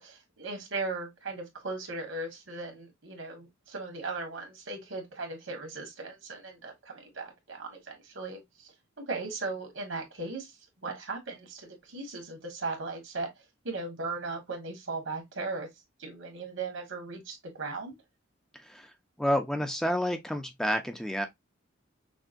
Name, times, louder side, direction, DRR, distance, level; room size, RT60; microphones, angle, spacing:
voice 1, 0.0-10.5 10.8-13.3 13.6-15.7 16.0-18.0, right 3 dB, 75° right, 1.7 m, -37 dB
voice 2, 18.5-21.3, equal, 5° left, 0.5 m, -30 dB
5.9 x 2.2 x 2.5 m
head